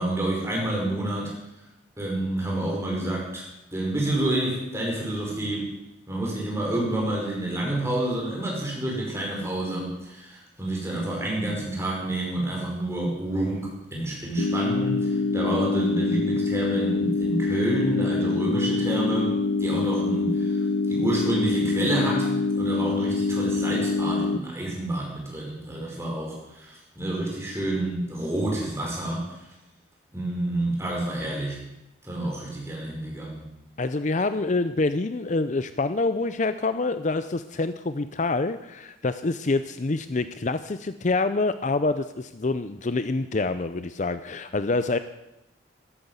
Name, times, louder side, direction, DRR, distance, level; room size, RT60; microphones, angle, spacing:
voice 1, 0.0-1.3 2.0-3.5 3.7-5.7 6.1-29.5 30.1-31.6 32.0-33.4, right 1 dB, 15° right, -2 dB, 5.1 m, -29 dB
sound 1, 14.4-24.4, left 3 dB, 85° left, 0.7 m, -25 dB
voice 2, 33.8-45.0, left 3 dB, 40° left, 11 dB, 0.5 m, -26 dB
13.5 x 12.5 x 8.1 m, 0.92 s
head